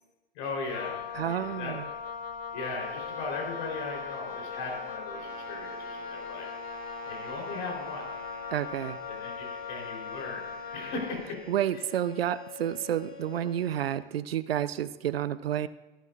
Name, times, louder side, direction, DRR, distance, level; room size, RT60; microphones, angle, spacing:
voice 1, 0.3-1.7 2.5-6.5 7.1-8.1 9.1-10.4 10.7-11.8, left 3 dB, 50° left, 0 dB, 3.6 m, -38 dB
Wind instrument woodwind instrument, 0.7-11.2, left 6 dB, 30° left, 0.8 m, -39 dB
voice 2, 1.1-1.9 8.5-9.0 11.5-15.7, right 11 dB, 75° right, 16 dB, 0.5 m, -30 dB
sound 1, 2.8-14.0, left 7 dB, 70° left, 2.1 m, -49 dB
Brass instrument, 5.1-9.2, right 8 dB, 45° right, 1.0 m, -49 dB
13.5 x 11.5 x 2.4 m, 1.1 s
hypercardioid pair, 105°, 30 cm